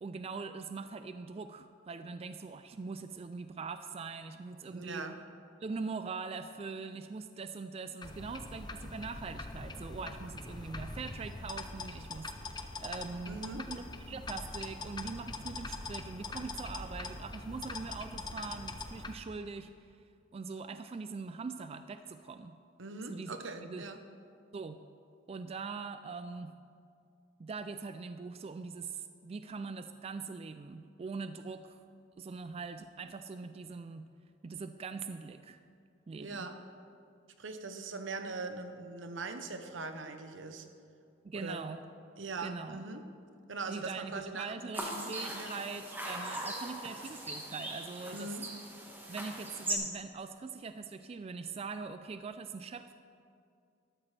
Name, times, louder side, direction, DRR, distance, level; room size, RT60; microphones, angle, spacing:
voice 1, 0.0-5.1 5.6-19.9 20.3-22.6 23.1-23.3 23.6-23.9 24.5-24.8 25.3-26.5 27.4-31.8 32.2-34.1 34.4-35.6 36.1-36.5 41.2-41.8 42.4-42.8 43.7-48.3 49.1-52.9, right 4 dB, 30° right, 10 dB, 0.3 m, -42 dB
voice 2, 4.7-5.2 13.3-13.6 22.8-24.0 36.2-36.6 37.4-40.7 41.3-41.7 42.2-43.0 43.5-44.5 44.8-45.5 48.1-48.5, right 3 dB, 85° right, 7 dB, 0.9 m, -41 dB
sound 1, 8.0-19.1, left 3 dB, 25° left, 0.6 m, -43 dB
sound 2, 44.7-49.8, right 1 dB, 10° right, 1.5 m, -40 dB
13.5 x 13.0 x 3.3 m, 2.4 s
head